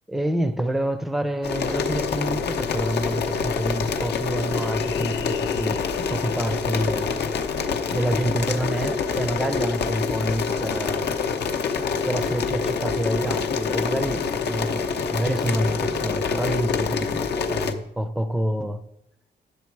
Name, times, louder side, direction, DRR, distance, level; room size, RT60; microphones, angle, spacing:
voice 1, 0.1-7.2 7.9-11.1 12.1-18.8, right 1 dB, ahead, 0.5 m, -28 dB
sound 1, 1.4-17.7, left 5 dB, 65° left, 0.8 m, -26 dB
sound 2, 1.6-7.8, left 10 dB, 90° left, 0.4 m, -41 dB
9.6 x 7.0 x 4.6 m
wide cardioid pair, 170°, 19 cm